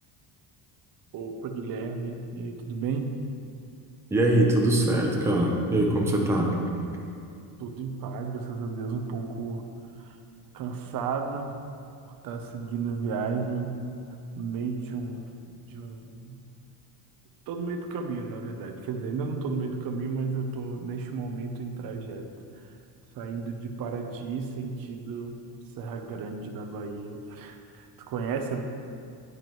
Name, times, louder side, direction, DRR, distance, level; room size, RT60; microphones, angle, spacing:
voice 1, 1.1-3.2 7.6-9.7 10.0-10.2 10.5-11.6 12.0-13.8 14.4-16.4 17.5-22.3 22.5-22.7 23.1-25.4 25.8-28.6, right 4 dB, 50° right, 4 dB, 0.8 m, -33 dB
voice 2, 4.1-6.5, right 1 dB, 5° right, -1 dB, 0.8 m, -22 dB
9.6 x 9.5 x 3.1 m, 2.4 s
cardioid pair, 170°, 43 cm